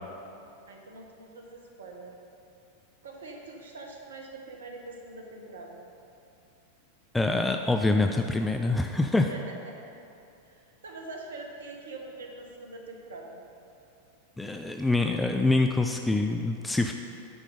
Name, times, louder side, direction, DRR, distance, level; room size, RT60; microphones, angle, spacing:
voice 1, 0.7-2.2 3.0-5.9 9.3-9.9 10.4-13.4, right 2 dB, 65° right, 1 dB, 1.1 m, -44 dB
voice 2, 7.1-9.3 14.4-16.9, left 2 dB, 5° left, 4 dB, 0.3 m, -25 dB
9.0 x 5.0 x 5.0 m, 2.7 s
figure-of-eight pair, 90°, 0 cm